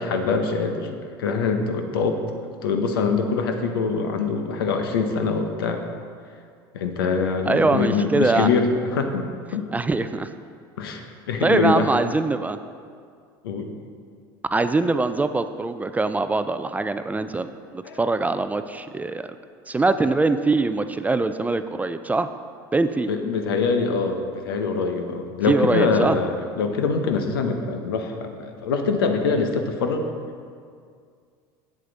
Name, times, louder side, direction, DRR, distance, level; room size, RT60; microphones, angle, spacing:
voice 1, 0.0-5.8 6.7-9.7 10.8-11.9 13.4-13.7 17.8-18.0 23.1-30.1, left 4 dB, 85° left, 5 dB, 0.8 m, -24 dB
voice 2, 7.5-8.5 9.7-10.3 11.4-12.6 14.5-19.3 19.7-22.3 22.7-23.1 25.5-26.2, right 3 dB, 15° right, 10 dB, 0.3 m, -23 dB
7.6 x 7.5 x 3.9 m, 2.2 s
hypercardioid pair, 85°, 12 cm